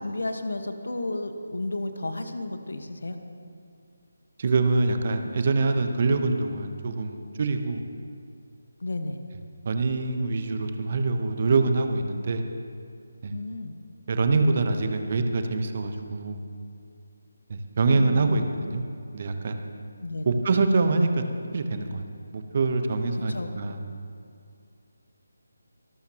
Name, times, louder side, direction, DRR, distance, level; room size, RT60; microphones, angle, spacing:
voice 1, 0.0-3.2 8.8-9.2 13.3-13.7 17.9-18.5 20.0-20.4 23.3-23.5, left 2 dB, 65° left, 7 dB, 1.4 m, -32 dB
voice 2, 4.4-7.8 9.6-12.4 13.2-13.3 14.1-16.4 17.5-18.8 19.1-19.6 20.2-21.2 21.5-22.0 22.3-23.8, right 3 dB, 40° right, 6 dB, 1.0 m, -25 dB
25.0 x 12.5 x 3.0 m, 2.3 s
figure-of-eight pair, 155°, 0 cm